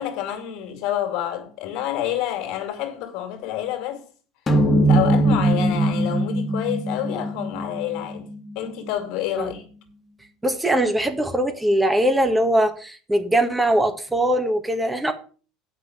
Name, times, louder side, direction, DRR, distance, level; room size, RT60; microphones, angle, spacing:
voice 1, 0.0-4.0 4.9-9.7, left 11 dB, 65° left, 2.5 m, -28 dB
sound 1, 4.5-9.1, right 1 dB, 25° left, 2.0 m, -21 dB
voice 2, 10.4-15.1, right 1 dB, 10° right, 1.6 m, -21 dB
7.9 x 6.0 x 7.9 m
hypercardioid pair, 85°, 0 cm